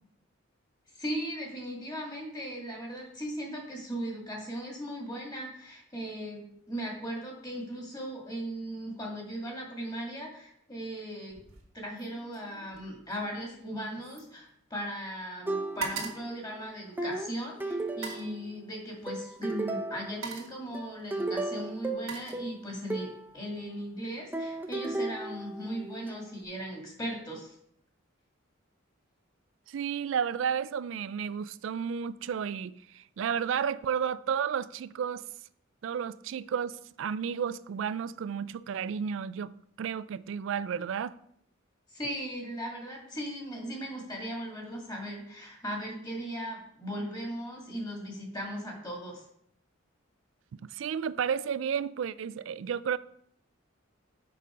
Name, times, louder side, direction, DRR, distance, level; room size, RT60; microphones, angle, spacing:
voice 1, 0.9-11.4 11.7-27.6 41.9-49.2, equal, 20° left, 1.9 m, -38 dB
sound 1, 11.3-11.7 12.0-15.1 15.4-17.3 17.9-18.4 19.4-19.6 20.0-20.7 21.5-22.9 23.3-23.7, right 5 dB, 90° right, 1.6 m, -42 dB
sound 2, 15.5-16.3 17.0-18.6 19.1-20.3 20.7-23.3 24.3-26.1, right 2 dB, 10° right, 0.6 m, -35 dB
voice 2, 29.7-35.3 35.8-41.1 50.6-53.0, right 7 dB, 70° right, 0.3 m, -32 dB
6.7 x 5.3 x 4.9 m
head